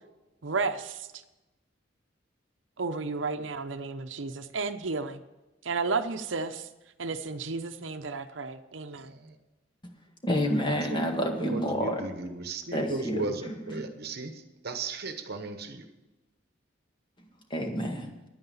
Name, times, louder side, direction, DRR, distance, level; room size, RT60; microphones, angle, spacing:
voice 1, 0.4-1.2 2.8-5.2 5.6-6.7 7.0-9.1, right 4 dB, 90° right, 8 dB, 0.8 m, -32 dB
voice 2, 8.9-9.4 10.7-11.0 11.4-15.9, right 3 dB, 55° right, 7 dB, 1.1 m, -36 dB
voice 3, 10.2-12.0 12.7-13.8 17.5-18.1, equal, 25° left, 3 dB, 1.8 m, -29 dB
10.5 x 9.6 x 7.1 m, 1.0 s
head